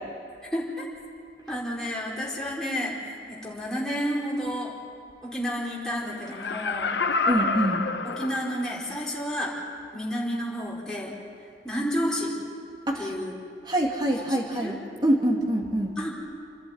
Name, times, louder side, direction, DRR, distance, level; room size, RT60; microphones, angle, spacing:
voice 1, 0.5-0.9 1.5-4.7 5.2-6.9 8.0-9.5 9.9-11.1 11.6-12.3 13.0-13.3 14.1-14.7 16.0-16.1, equal, 5° left, -6 dB, 4.6 m, -31 dB
Laughter, 6.3-8.9 9.4-9.5, left 4 dB, 80° left, 0.9 m, -28 dB
voice 2, 7.3-7.8 12.9-13.1 13.7-15.9, right 1 dB, 25° right, 0 dB, 2.5 m, -25 dB
29.5 x 11.0 x 9.5 m, 2.4 s
head